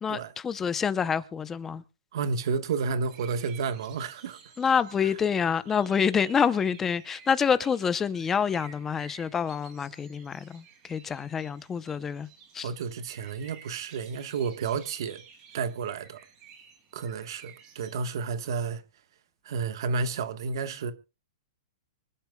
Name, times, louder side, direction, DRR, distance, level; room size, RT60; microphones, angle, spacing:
voice 1, 0.0-1.8 4.6-12.3 12.5-12.7, left 7 dB, 10° left, 0.7 m, -27 dB
voice 2, 2.1-4.4 5.0-5.1 12.6-15.2 15.5-16.2 16.9-18.8 19.4-20.9, right 5 dB, 55° right, 1.3 m, -31 dB
sound 1, 3.1-18.0, right 6 dB, 25° right, 2.8 m, -53 dB
25.5 x 11.5 x 2.3 m
hypercardioid pair, 170°, 3 cm